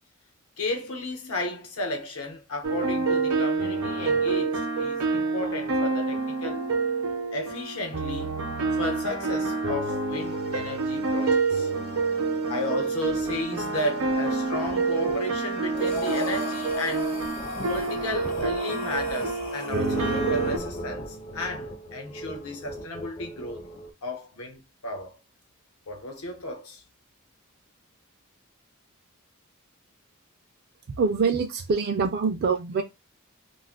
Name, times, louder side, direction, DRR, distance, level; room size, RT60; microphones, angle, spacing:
voice 1, 0.6-6.7 7.3-8.4 8.7-11.7 12.5-17.1 17.7-23.6 24.0-25.2 25.9-26.8, left 1 dB, 85° left, 0.9 m, -33 dB
sound 1, 2.6-20.6, right 3 dB, 80° right, 0.7 m, -27 dB
sound 2, 13.1-23.9, right 1 dB, 30° left, 0.4 m, -38 dB
Breathing, 15.8-20.7, left 3 dB, 60° left, 0.9 m, -38 dB
voice 2, 30.9-32.8, right 5 dB, 50° right, 0.4 m, -25 dB
2.5 x 2.4 x 3.6 m
head